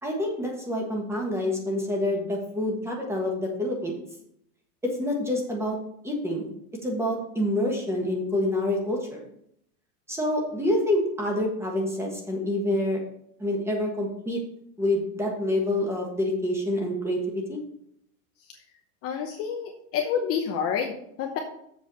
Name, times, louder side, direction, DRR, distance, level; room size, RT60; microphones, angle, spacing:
voice 1, 0.0-4.0 5.0-5.8 6.0-6.5 6.8-9.3 10.1-13.0 13.4-14.4 14.8-17.6, left 1 dB, 5° right, 0 dB, 1.4 m, -27 dB
voice 2, 19.0-21.4, left 7 dB, 30° left, 3 dB, 0.8 m, -28 dB
7.3 x 4.7 x 6.8 m, 0.72 s
supercardioid pair, 155°, 46 cm